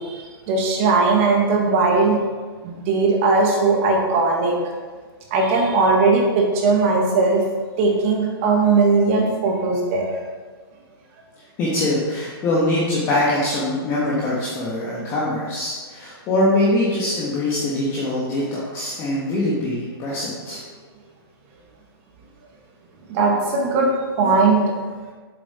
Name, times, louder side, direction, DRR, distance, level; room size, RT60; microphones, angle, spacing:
voice 1, 0.0-2.2 2.6-4.6 5.3-7.4 7.8-10.2 15.0-15.1 23.1-23.9 24.2-24.6, right 3 dB, 30° right, 0 dB, 1.6 m, -19 dB
voice 2, 11.6-20.6, left 1 dB, 20° left, -6 dB, 1.5 m, -23 dB
7.5 x 7.5 x 4.3 m, 1.4 s
hypercardioid pair, 160°, 13 cm